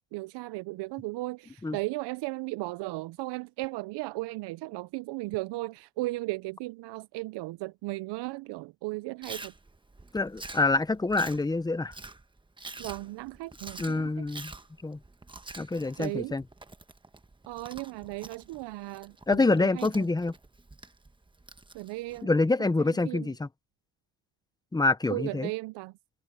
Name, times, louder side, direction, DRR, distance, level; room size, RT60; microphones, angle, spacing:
voice 1, 0.0-9.5 12.8-14.2 16.0-16.3 17.5-19.9 21.7-22.3 23.1-23.3 25.1-25.9, right 21 dB, 80° right, 0.5 m, -36 dB
Chewing mastication, 9.2-22.2, right 3 dB, 10° right, 1.1 m, -47 dB
voice 2, 10.1-11.9 13.8-14.5 14.8-15.0 15.6-16.4 19.3-20.3 22.2-23.5 24.7-25.5, left 3 dB, 10° left, 0.7 m, -26 dB
cardioid pair, 110°, 40 cm